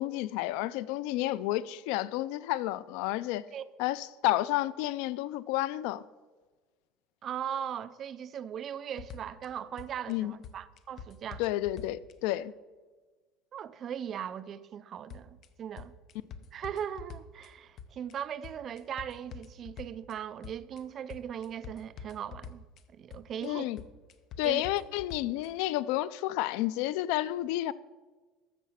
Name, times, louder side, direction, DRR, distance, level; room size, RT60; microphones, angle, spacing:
voice 1, 0.0-3.4 3.8-6.0 10.1-10.3 11.4-12.5 23.4-23.8 24.4-27.7, left 15 dB, 70° left, 0.4 m, -31 dB
voice 2, 7.2-11.4 13.5-15.9 16.5-22.6 22.9-23.6 24.4-24.6, right 9 dB, 30° right, 0.4 m, -39 dB
sound 1, 9.0-9.5 9.8-10.1 10.4-12.1 15.1-15.5 15.8-17.5 17.8-18.1 18.4-20.1 20.4-20.8 21.1-22.8 23.1-23.5 23.8-25.5, left 6 dB, 35° left, 0.7 m, -46 dB
13.5 x 7.3 x 5.6 m
cardioid pair, 170°, 0 cm